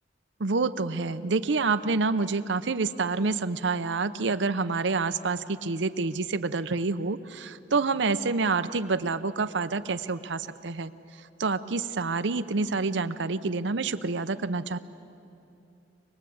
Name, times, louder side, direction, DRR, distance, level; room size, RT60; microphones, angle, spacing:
voice 1, 0.4-10.9 11.4-14.8, right 4 dB, 85° right, 11 dB, 0.7 m, -27 dB
24.5 x 20.0 x 8.6 m, 2.7 s
head